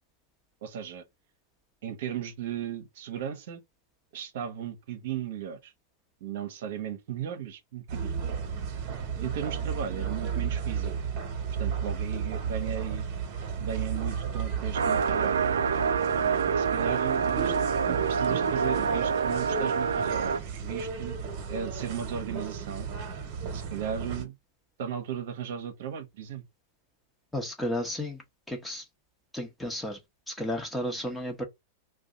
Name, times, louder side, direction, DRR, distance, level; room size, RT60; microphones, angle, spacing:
voice 1, 0.6-1.0 1.8-3.6 4.1-5.7 6.2-8.2 9.2-10.9 11.6-13.1 13.6-15.4 16.5-17.6 17.9-21.2 21.5-22.9 23.5-24.4 24.8-26.4, right 9 dB, 65° right, 0.8 m, -36 dB
sound 1, 7.9-24.3, right 6 dB, 45° right, 1.1 m, -34 dB
sound 2, 14.7-20.4, right 6 dB, 90° right, 0.3 m, -27 dB
voice 2, 27.3-28.2 28.5-28.8 29.3-30.0 30.3-31.4, left 1 dB, 5° left, 0.9 m, -33 dB
2.6 x 2.2 x 3.7 m
hypercardioid pair, 115°, 0 cm